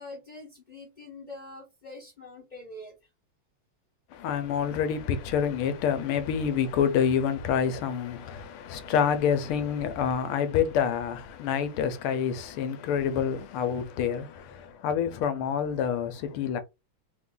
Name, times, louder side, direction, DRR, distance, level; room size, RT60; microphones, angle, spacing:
voice 1, 0.0-3.1, left 2 dB, 40° left, 0.6 m, -44 dB
voice 2, 4.1-16.6, left 7 dB, 80° left, 1.6 m, -27 dB
4.3 x 2.5 x 3.7 m
omnidirectional pair, 2.4 m